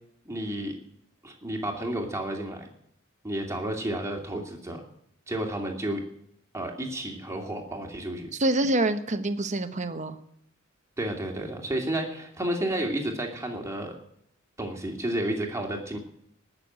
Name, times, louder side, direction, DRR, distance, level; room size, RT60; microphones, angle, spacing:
voice 1, 0.2-0.8 1.2-2.7 3.2-4.8 5.3-6.0 6.5-8.3 11.0-14.0 14.6-16.0, right 1 dB, 15° right, 1 dB, 2.6 m, -31 dB
voice 2, 8.4-10.2, right 1 dB, 35° right, 9 dB, 1.1 m, -26 dB
19.0 x 6.8 x 8.7 m, 0.71 s
head